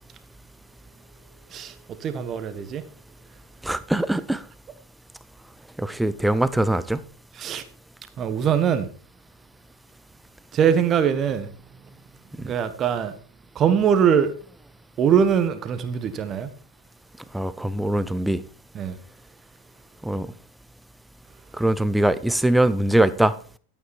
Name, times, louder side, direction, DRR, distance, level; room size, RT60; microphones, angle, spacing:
voice 1, 1.5-2.9 7.3-7.6 8.2-8.9 10.5-11.5 12.3-13.1 13.5-14.3 15.0-16.5 18.7-19.0, right 8 dB, 30° right, 1.4 m, -22 dB
voice 2, 3.6-4.4 5.8-7.0 12.4-12.5 17.3-18.4 20.0-20.3 21.6-23.3, right 1 dB, 5° right, 0.7 m, -22 dB
12.5 x 8.8 x 4.4 m
figure-of-eight pair, 90°, 0 cm